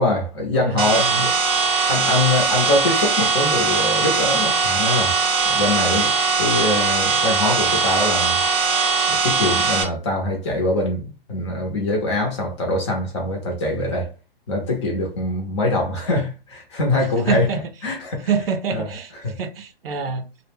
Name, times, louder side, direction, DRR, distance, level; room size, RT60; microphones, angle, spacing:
voice 1, 0.0-1.3 1.9-5.1 5.5-8.4 9.1-14.1 14.5-17.5 17.8-18.3 18.7-18.9 19.2-19.4, left 2 dB, 30° left, 0.7 m, -23 dB
voice 2, 0.5-1.3 17.0-17.6 18.3-20.3, right 6 dB, 65° right, 0.6 m, -26 dB
sound 1, 0.8-9.8, right 4 dB, 25° right, 0.6 m, -20 dB
2.2 x 2.1 x 3.3 m
hypercardioid pair, 160°, 31 cm